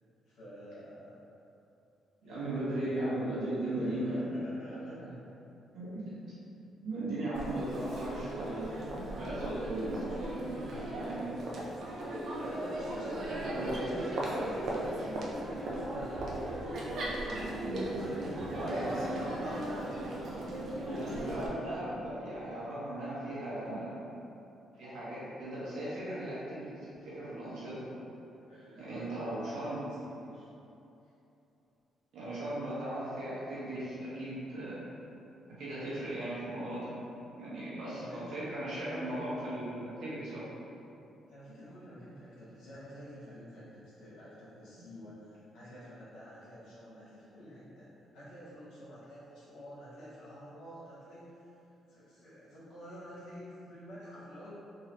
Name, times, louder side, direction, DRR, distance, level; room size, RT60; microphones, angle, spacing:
voice 1, 0.3-1.2 2.2-2.7 3.7-5.2 10.3-16.3 16.9-18.4 19.7-21.0 21.4-22.0 22.9-23.6 28.5-30.5 38.0-38.4 41.3-47.9 48.1-51.5 51.9-54.6, equal, 90° left, -10 dB, 1.4 m, -49 dB
voice 2, 2.2-4.2 5.7-6.2 6.8-8.7 9.2-10.1 10.7-11.3 13.4-13.9 18.5-19.0 21.0-23.8 24.7-27.8 28.8-29.8 32.1-34.8 35.6-36.9 37.4-40.4, right 1 dB, 80° right, -9 dB, 1.4 m, -37 dB
Crowd, 7.3-21.5, right 1 dB, 60° right, 0.6 m, -37 dB
3.8 x 2.8 x 3.0 m, 2.8 s
cardioid pair, 90°, 0 cm